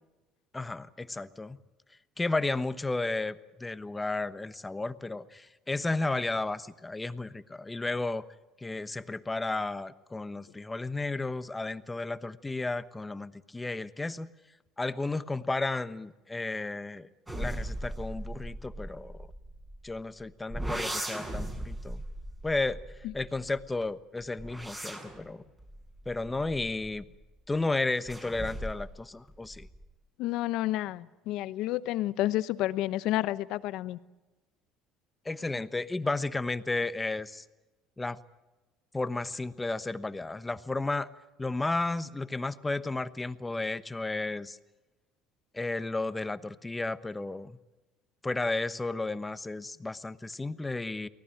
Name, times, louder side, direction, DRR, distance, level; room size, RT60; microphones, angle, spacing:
voice 1, 0.5-1.6 2.2-8.2 8.6-14.3 14.8-17.1 17.4-19.2 19.8-22.0 22.4-22.8 23.1-25.4 26.0-27.0 27.5-29.7 35.2-37.4 38.0-38.2 38.9-41.1 41.4-44.6 45.5-47.6 48.2-51.1, left 2 dB, 15° left, 13 dB, 1.1 m, -33 dB
sound 1, 17.3-20.0 20.5-23.6 24.2-27.2 28.1-29.0 29.3-29.8, right 1 dB, 15° right, 7.2 m, -38 dB
voice 2, 30.2-34.0, left 15 dB, 70° left, 15 dB, 0.9 m, -30 dB
24.0 x 18.0 x 9.1 m, 1.1 s
supercardioid pair, 90°, 0 cm